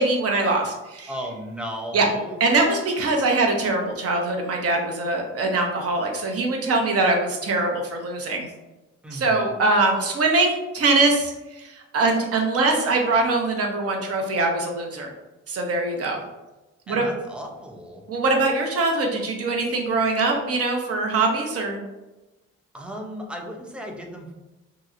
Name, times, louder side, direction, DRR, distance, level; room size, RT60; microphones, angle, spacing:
voice 1, 0.0-1.1 1.9-2.0 2.4-8.5 9.1-15.1 15.5-16.2 16.9-17.1 18.1-21.8, right 3 dB, 50° right, 2 dB, 0.7 m, -22 dB
voice 2, 1.1-2.4 9.0-9.4 16.9-18.0 22.7-24.3, equal, 5° right, 1 dB, 0.5 m, -35 dB
2.9 x 2.8 x 2.4 m, 1.1 s
cardioid pair, 90°, 30 cm